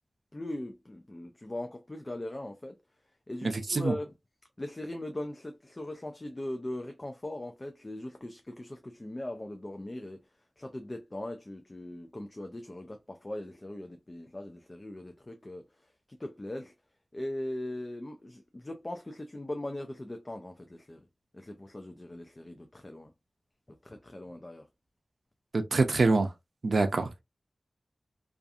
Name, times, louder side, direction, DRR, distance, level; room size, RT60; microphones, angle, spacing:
voice 1, 0.3-2.8 3.3-4.1 4.6-10.2 10.6-15.7 16.1-16.7 17.1-21.0 21.3-23.1 23.8-24.6 26.7-26.9, left 1 dB, 25° left, 0.4 m, -40 dB
voice 2, 3.4-3.9 25.5-26.3 26.6-27.2, right 3 dB, 70° right, 0.5 m, -25 dB
2.6 x 2.4 x 2.3 m
wide cardioid pair, 85°, 0 cm